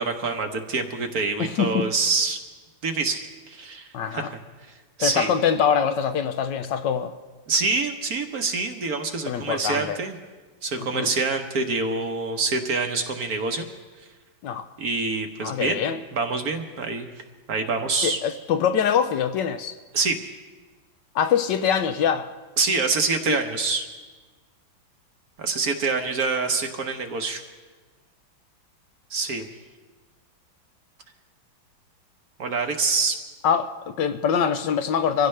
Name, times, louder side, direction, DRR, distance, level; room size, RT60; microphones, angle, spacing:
voice 1, 0.0-2.4 2.8-4.4 5.0-5.3 7.5-10.2 10.6-13.7 14.8-15.8 16.1-17.1 17.5-18.2 19.9-20.2 22.6-23.9 25.4-27.4 29.1-29.5 32.4-33.1, right 4 dB, 55° right, 5 dB, 1.3 m, -26 dB
voice 2, 1.4-1.9 3.9-4.3 5.0-7.1 9.3-10.0 10.8-11.1 14.4-14.7 15.4-16.0 18.0-19.8 21.1-22.3 23.3-23.4 33.4-35.3, left 7 dB, 70° left, 9 dB, 1.2 m, -24 dB
24.5 x 15.5 x 3.3 m, 1.3 s
omnidirectional pair, 2.1 m